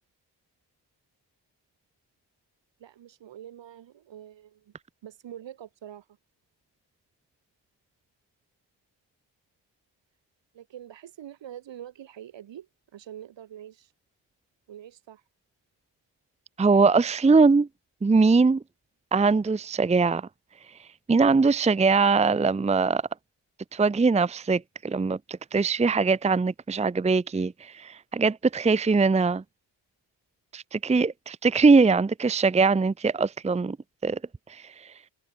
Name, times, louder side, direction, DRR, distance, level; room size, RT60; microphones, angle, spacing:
voice 1, 2.8-4.7 5.0-6.1 10.5-13.9 14.7-15.2, right 10 dB, 70° right, 5.4 m, -45 dB
voice 2, 16.6-17.7 18.0-18.6 19.1-20.3 21.1-23.0 23.7-29.4 30.5-33.8 34.0-34.2 34.5-34.9, right 4 dB, 15° right, 0.7 m, -22 dB
cardioid pair, 70°, 45 cm